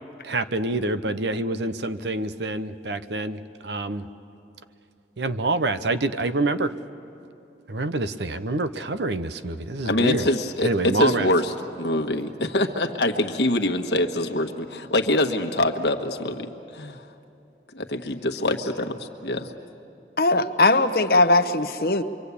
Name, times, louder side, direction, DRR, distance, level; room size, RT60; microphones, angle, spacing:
voice 1, 0.2-4.1 5.2-6.7 7.7-10.3 10.6-11.3, right 2 dB, 80° right, 11 dB, 0.8 m, -26 dB
voice 2, 9.8-11.5 11.8-17.0 17.7-19.5, left 1 dB, 80° left, 5 dB, 1.4 m, -24 dB
voice 3, 20.2-22.0, left 2 dB, 55° left, 8 dB, 0.9 m, -19 dB
25.0 x 24.0 x 8.4 m, 2.7 s
head